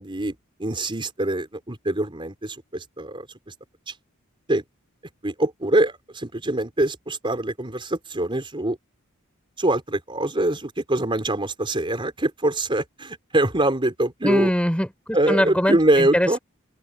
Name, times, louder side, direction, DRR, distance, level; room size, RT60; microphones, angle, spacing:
voice 1, 0.0-3.5 3.9-4.0 4.5-4.6 5.2-8.8 9.6-14.5 15.1-16.4, right 1 dB, 25° right, 4.0 m, -24 dB
voice 2, 14.2-16.4, equal, 5° left, 5.1 m, -23 dB
open air
head